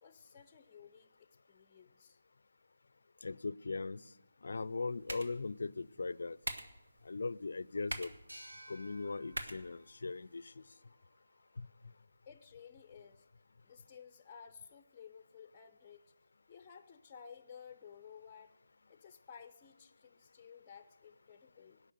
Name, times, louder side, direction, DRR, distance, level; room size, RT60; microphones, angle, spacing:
voice 1, 0.0-2.2 12.3-13.3 13.6-16.0 16.5-18.5 18.9-21.8, left 7 dB, 20° left, 10 dB, 0.7 m, -55 dB
voice 2, 3.2-4.0 4.4-6.4 7.1-8.1 8.7-10.4 11.6-11.7, left 3 dB, 65° left, 19 dB, 0.5 m, -39 dB
sound 1, 4.5-10.5, right 2 dB, 70° right, 1.7 m, -47 dB
sound 2, 8.3-11.7, right 1 dB, 90° right, 3.2 m, -57 dB
18.0 x 6.1 x 9.3 m, 0.92 s
figure-of-eight pair, 160°, 0 cm